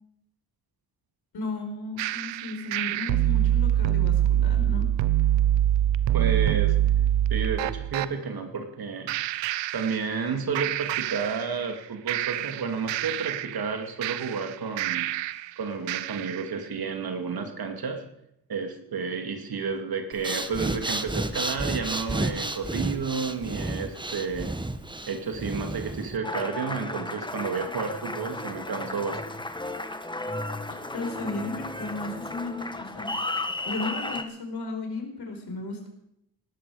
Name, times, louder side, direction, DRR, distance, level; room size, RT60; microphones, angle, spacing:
voice 1, 1.3-4.9 30.7-33.1 33.6-35.9, left 3 dB, 60° left, 3 dB, 4.9 m, -35 dB
sound 1, 2.0-8.1 9.1-10.3 10.5-11.8 12.1-15.5 15.9-16.5, right 12 dB, 75° right, 0.8 m, -25 dB
voice 2, 6.1-6.8 7.3-9.1 9.7-15.1 15.6-18.0 18.5-24.5 25.1-29.4, right 5 dB, 55° right, 5 dB, 2.7 m, -31 dB
Breathing, 20.1-26.2, right 2 dB, 10° right, 1.3 m, -31 dB
Applause, 26.2-34.2, left 2 dB, 10° left, 1.5 m, -34 dB
18.5 x 13.0 x 5.0 m, 0.78 s
supercardioid pair, 55°, 44 cm